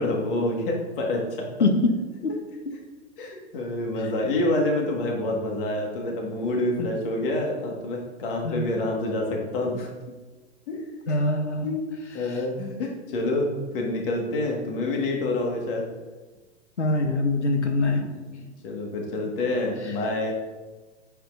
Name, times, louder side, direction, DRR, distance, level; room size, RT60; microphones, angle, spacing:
voice 1, 0.0-1.5 3.2-9.9 10.7-10.8 11.1-11.2 11.6-11.8 12.1-15.8 17.8-18.0 18.6-20.3, left 2 dB, 50° left, 0 dB, 1.9 m, -27 dB
voice 2, 1.6-1.9 2.2-2.4 4.0-4.1 6.8-6.9 8.4-8.6 11.1-11.7 12.1-12.4 16.8-18.0 19.8-20.0, left 2 dB, 80° left, 4 dB, 1.0 m, -24 dB
9.0 x 7.4 x 2.7 m, 1.2 s
figure-of-eight pair, 105°, 34 cm